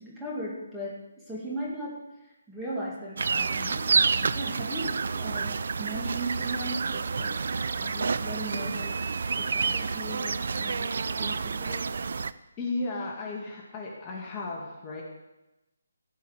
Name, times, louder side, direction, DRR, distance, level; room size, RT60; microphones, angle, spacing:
voice 1, 0.0-9.0 9.4-11.9, right 1 dB, 5° right, -7 dB, 2.3 m, -38 dB
sound 1, 3.2-12.3, right 5 dB, 60° right, 0.5 m, -29 dB
voice 2, 12.6-15.0, left 3 dB, 20° left, -3 dB, 2.2 m, -34 dB
16.5 x 5.6 x 8.3 m, 0.99 s
hypercardioid pair, 165°, 0 cm